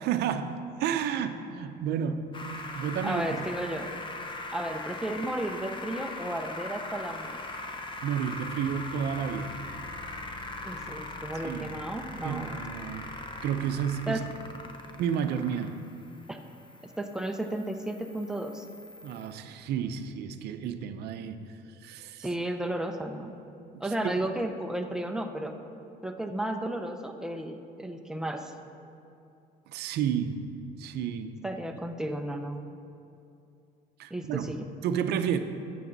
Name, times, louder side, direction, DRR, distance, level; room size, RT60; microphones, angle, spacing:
voice 1, 0.0-2.3 2.7-3.2 8.0-9.6 11.4-11.8 12.2-13.2 13.4-14.2 15.0-15.8 19.0-21.6 21.8-22.3 23.7-24.1 29.7-30.4 30.8-31.3 34.0-34.5 34.8-35.4, right 8 dB, 75° right, 9 dB, 0.6 m, -31 dB
sound 1, 2.3-19.3, left 2 dB, 30° left, 0.8 m, -41 dB
voice 2, 3.0-3.9 4.5-7.4 10.6-12.6 14.1-14.2 16.3-16.4 17.0-18.7 22.2-23.3 23.8-25.5 26.0-28.5 31.4-32.6 34.1-34.6, right 1 dB, 5° right, 4 dB, 0.7 m, -33 dB
11.0 x 7.8 x 4.0 m, 2.6 s
cardioid pair, 110°, 17 cm